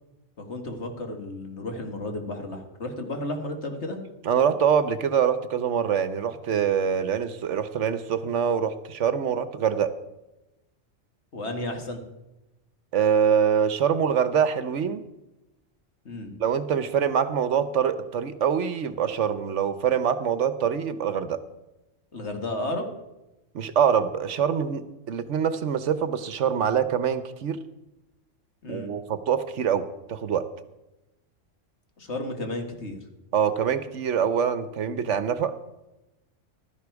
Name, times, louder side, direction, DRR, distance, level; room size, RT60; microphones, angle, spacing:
voice 1, 0.4-4.0 11.3-12.0 16.1-16.3 22.1-22.9 28.6-28.9 32.0-33.0, left 1 dB, 60° left, 5 dB, 2.1 m, -33 dB
voice 2, 4.2-9.9 12.9-15.0 16.4-21.4 23.5-27.6 28.7-30.4 33.3-35.5, right 7 dB, 70° right, 13 dB, 1.1 m, -24 dB
15.5 x 12.5 x 4.7 m, 0.97 s
omnidirectional pair, 1.3 m